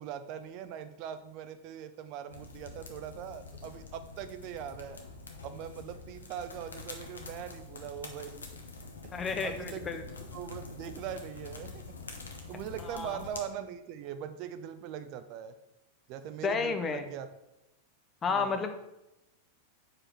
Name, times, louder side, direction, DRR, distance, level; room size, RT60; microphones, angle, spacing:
voice 1, 0.0-5.0 5.4-8.5 9.0-9.1 9.4-10.0 10.3-11.9 12.5-15.5 16.1-17.3 18.3-18.7, right 9 dB, 40° right, 10 dB, 0.5 m, -41 dB
sound 1, 2.3-13.4, left 4 dB, 75° left, 1.0 m, -46 dB
voice 2, 9.1-10.0 12.8-13.2 16.4-17.0 18.2-18.7, left 5 dB, 20° left, 7 dB, 0.8 m, -31 dB
4.9 x 4.9 x 6.0 m, 0.92 s
figure-of-eight pair, 90°, 0 cm